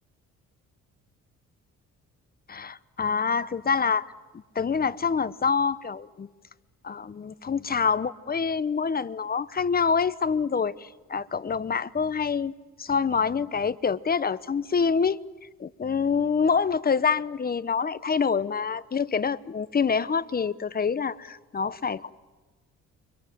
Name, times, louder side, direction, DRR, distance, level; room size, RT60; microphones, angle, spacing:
voice 1, 2.5-4.1 4.5-6.3 6.8-12.5 12.8-15.2 15.6-22.1, left 5 dB, 30° left, 1.0 m, -26 dB
30.0 x 24.5 x 7.9 m
cardioid pair, 90°, 30 cm